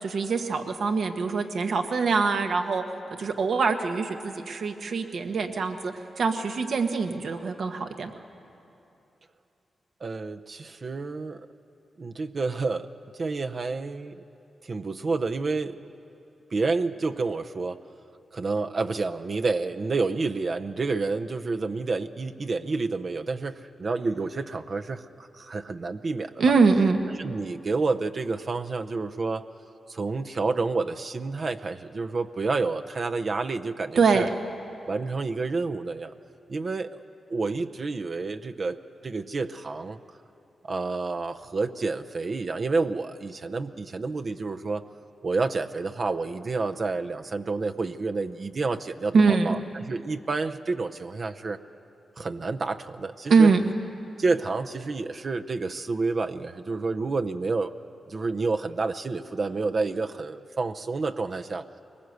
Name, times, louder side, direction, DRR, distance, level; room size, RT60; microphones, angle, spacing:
voice 1, 0.0-2.8 3.2-8.1 26.4-27.0 33.9-34.3 49.1-49.6 53.3-53.6, right 4 dB, 75° right, 5 dB, 1.4 m, -23 dB
voice 2, 10.0-11.5 12.0-12.9 13.2-14.2 14.6-15.8 16.5-17.8 18.3-26.4 27.2-29.4 29.9-34.3 34.9-36.1 36.5-37.0 37.3-38.8 39.0-40.0 40.7-44.8 45.2-51.6 52.2-53.5 54.2-57.7 58.1-61.6, right 3 dB, 50° right, 7 dB, 0.7 m, -29 dB
22.0 x 20.0 x 8.0 m, 2.8 s
cardioid pair, 65°, 0 cm